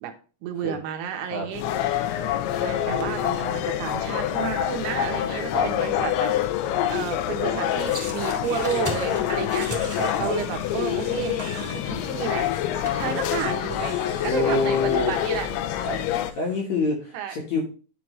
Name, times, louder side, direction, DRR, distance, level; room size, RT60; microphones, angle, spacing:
voice 1, 0.4-2.0 2.6-6.3 6.9-12.5 12.7-15.5 17.1-17.3, right 8 dB, 80° right, 5 dB, 3.0 m, -32 dB
sound 1, 1.5-16.3, left 11 dB, 80° left, 2.5 m, -26 dB
sound 2, 7.8-16.6, right 1 dB, 10° right, 2.6 m, -40 dB
voice 2, 9.9-10.4 14.2-15.1 15.8-16.0 16.4-17.6, left 3 dB, 55° left, -1 dB, 2.2 m, -26 dB
10.5 x 4.8 x 3.1 m, 0.37 s
omnidirectional pair, 4.8 m